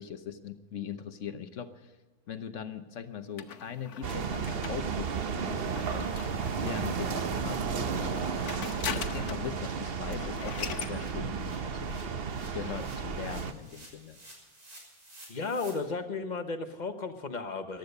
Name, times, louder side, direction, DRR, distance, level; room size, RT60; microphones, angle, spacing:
voice 1, 0.0-1.9 2.3-6.1 6.6-8.3 8.9-12.0 12.5-14.2, left 8 dB, 60° left, 11 dB, 1.2 m, -40 dB
sound 1, 2.7-2.8 3.2-3.3 3.6-3.7 4.1-4.2 4.5-4.6 4.9-5.1 5.4-5.6 5.8-15.7, right 1 dB, 75° right, 4.8 m, -55 dB
sound 2, 3.4-7.0 8.0-9.5 9.8-9.9 10.1-11.0, left 8 dB, 80° left, 1.4 m, -40 dB
sound 3, 4.0-13.5, right 6 dB, 45° right, 0.9 m, -33 dB
voice 2, 15.3-17.8, left 4 dB, 35° left, 8 dB, 1.1 m, -34 dB
15.0 x 12.0 x 6.6 m, 1.3 s
omnidirectional pair, 1.6 m